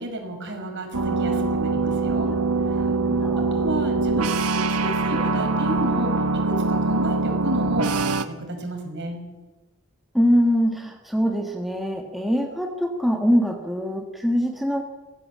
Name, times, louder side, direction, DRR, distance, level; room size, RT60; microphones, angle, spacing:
voice 1, 0.0-2.3 2.8-2.9 3.4-9.2, right 1 dB, 55° right, 3 dB, 5.6 m, -32 dB
sound 1, 0.9-8.2, right 3 dB, 85° right, 1.5 m, -23 dB
voice 2, 2.7-3.7 10.1-14.8, equal, ahead, 2 dB, 1.5 m, -23 dB
23.5 x 16.5 x 7.4 m, 1.2 s
head